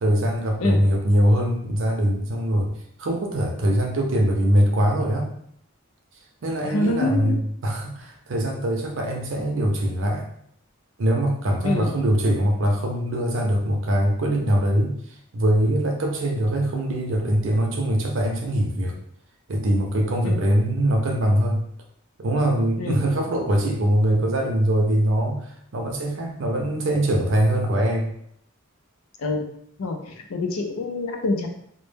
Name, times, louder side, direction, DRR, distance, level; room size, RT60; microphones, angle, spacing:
voice 1, 0.0-2.7 3.0-5.3 6.4-10.3 11.0-15.0 15.3-19.0 19.5-21.6 22.2-28.1, right 1 dB, 60° right, 1 dB, 0.5 m, -22 dB
voice 2, 6.6-7.4 11.6-11.9 20.2-20.4 22.8-23.0 29.2-29.5 29.8-31.5, left 2 dB, 90° left, 3 dB, 0.5 m, -25 dB
2.1 x 2.1 x 3.2 m, 0.68 s
head